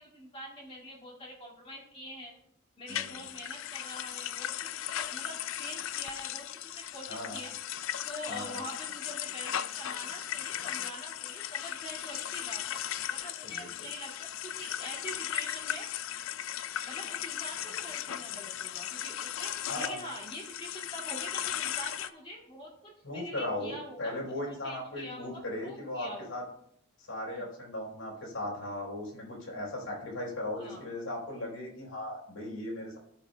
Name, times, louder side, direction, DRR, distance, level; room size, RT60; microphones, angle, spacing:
voice 1, 0.0-2.3 2.8-7.5 8.1-12.8 13.1-15.9 16.8-24.1 24.5-26.3 27.3-27.5 30.6-30.8, left 1 dB, 25° left, -2 dB, 2.1 m, -45 dB
voice 2, 2.9-3.3 7.1-7.4 8.3-8.6 13.4-13.7 19.7-20.0 23.0-26.4 27.1-33.0, left 1 dB, 85° left, -3 dB, 4.1 m, -37 dB
sound 1, 2.9-22.1, left 11 dB, 65° left, 0.4 m, -37 dB
15.0 x 7.2 x 2.2 m, 0.71 s
head